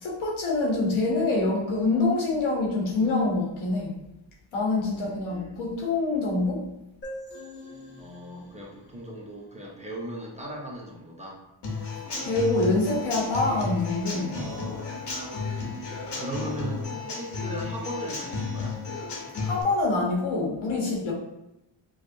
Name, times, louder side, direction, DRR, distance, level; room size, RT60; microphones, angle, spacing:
voice 1, 0.0-4.0 4.5-6.6 12.2-14.6 19.4-21.1, left 2 dB, 85° left, -2 dB, 1.1 m, -25 dB
voice 2, 4.9-5.6 8.0-11.4 15.6-18.8, equal, 15° right, -4 dB, 0.8 m, -38 dB
sound 1, 7.0-10.6, left 1 dB, 25° left, 0.8 m, -45 dB
Human voice / Acoustic guitar / Drum, 11.6-19.6, left 4 dB, 60° left, 1.0 m, -33 dB
4.9 x 2.0 x 2.6 m, 0.89 s
cardioid pair, 95°, 47 cm